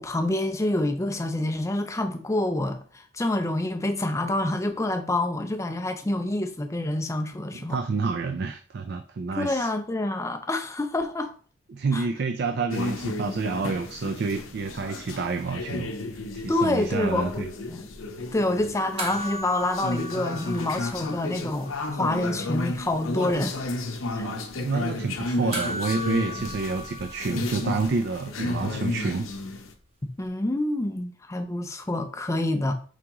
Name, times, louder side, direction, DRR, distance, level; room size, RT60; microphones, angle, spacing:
voice 1, 0.0-7.8 9.4-11.3 11.9-12.0 16.5-17.9 18.3-21.7 22.0-23.6 24.1-24.3 30.2-32.7, left 1 dB, 15° left, 0.4 m, -27 dB
voice 2, 7.5-9.7 11.7-15.9 16.3-17.5 24.1-24.4 24.6-29.3, right 4 dB, 50° right, 0.4 m, -29 dB
sound 1, 12.7-29.7, left 2 dB, 75° left, 0.7 m, -33 dB
sound 2, 19.0-21.6 21.9-22.0 25.5-28.1 30.3-30.4, right 1 dB, 30° right, 0.8 m, -37 dB
4.9 x 2.9 x 3.5 m
head